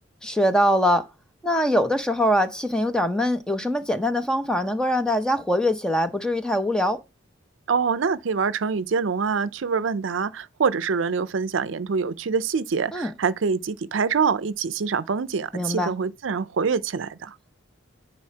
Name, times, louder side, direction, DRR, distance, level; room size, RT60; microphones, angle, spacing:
voice 1, 0.2-1.0 1.4-7.0 12.9-13.1 15.5-15.9, equal, 5° left, 0.6 m, -23 dB
voice 2, 7.7-17.3, right 5 dB, 70° right, 0.5 m, -25 dB
9.6 x 4.2 x 2.8 m
head